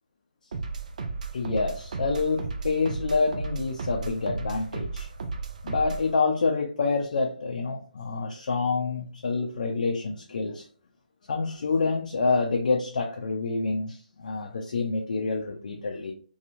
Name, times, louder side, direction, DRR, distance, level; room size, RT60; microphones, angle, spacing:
sound 1, 0.5-6.1, right 4 dB, 55° right, 0.5 m, -34 dB
voice 1, 1.3-5.1 5.6-10.7 11.3-16.1, left 4 dB, 60° left, 1 dB, 0.5 m, -27 dB
2.8 x 2.3 x 2.6 m, 0.42 s
figure-of-eight pair, 140°, 5 cm